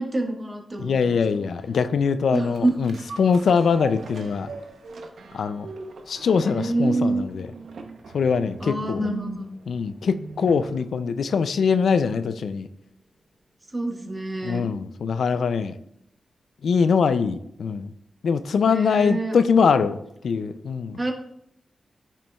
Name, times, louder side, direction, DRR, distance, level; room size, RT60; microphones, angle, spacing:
voice 1, 0.0-1.4 2.3-2.7 6.4-7.2 8.6-9.5 13.7-14.7 18.7-19.4 21.0-21.1, right 2 dB, 30° right, 1 dB, 1.5 m, -26 dB
voice 2, 0.8-4.5 5.3-5.7 6.1-7.5 8.1-9.1 9.7-12.7 14.4-15.7 16.6-17.9 18.2-21.0, left 6 dB, 80° left, 12 dB, 0.3 m, -23 dB
sound 1, 2.3-10.9 11.3-11.4, right 4 dB, 75° right, 0.8 m, -39 dB
8.9 x 5.9 x 2.3 m, 0.75 s
cardioid pair, 50°, 0 cm